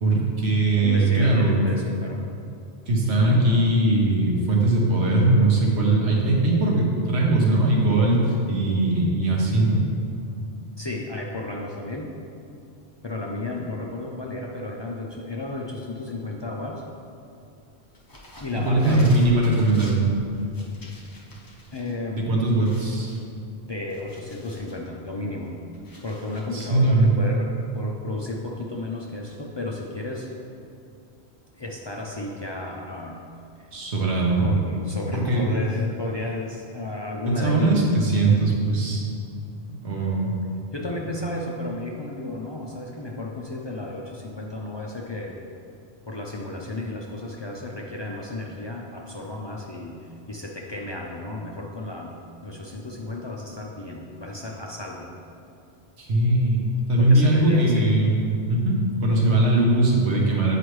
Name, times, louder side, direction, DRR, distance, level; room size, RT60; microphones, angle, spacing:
voice 1, 0.0-1.6 2.9-9.8 18.7-20.0 22.1-23.2 26.5-27.1 33.7-34.5 35.1-35.4 37.4-39.0 39.7-40.3 56.0-58.2 58.5-60.6, right 2 dB, 80° right, -2 dB, 1.3 m, -20 dB
voice 2, 0.8-2.2 3.2-3.5 10.8-12.1 13.0-16.8 18.4-19.2 21.7-22.2 23.6-25.5 26.0-30.3 31.6-33.2 33.6-33.7 34.4-37.8 40.7-45.4 46.1-52.2 52.4-55.1 57.0-57.9, left 2 dB, 45° left, -2 dB, 0.3 m, -33 dB
sound 1, 17.9-21.9 22.2-22.3 22.6-24.8 25.3-26.7, left 1 dB, 25° left, 0.7 m, -46 dB
7.9 x 4.8 x 3.1 m, 2.5 s
omnidirectional pair, 1.1 m